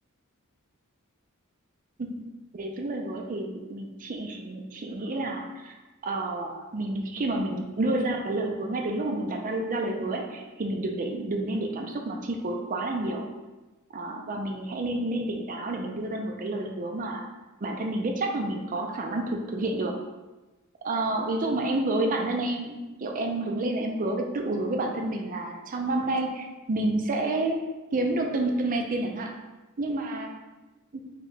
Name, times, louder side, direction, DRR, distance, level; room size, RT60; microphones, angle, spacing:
voice 1, 2.5-5.7 6.0-13.2 13.9-17.2 17.6-20.0 20.8-27.6 27.9-29.3 29.8-30.3 30.9-31.0, right 2 dB, 40° right, 3 dB, 0.5 m, -29 dB
4.5 x 2.2 x 3.9 m, 1.1 s
head